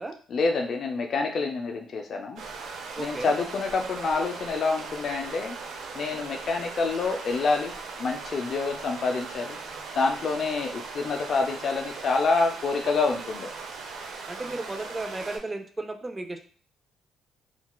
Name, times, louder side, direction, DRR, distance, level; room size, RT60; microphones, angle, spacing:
voice 1, 0.3-2.4 3.0-5.5 5.9-7.7 8.0-9.6 10.0-13.5, left 4 dB, 55° left, 3 dB, 0.4 m, -27 dB
sound 1, 2.4-15.4, right 4 dB, 85° right, 0.5 m, -39 dB
voice 2, 2.9-3.4 14.3-16.4, right 2 dB, 20° right, 5 dB, 0.4 m, -34 dB
3.8 x 2.2 x 2.2 m, 0.43 s
cardioid pair, 90°, 0 cm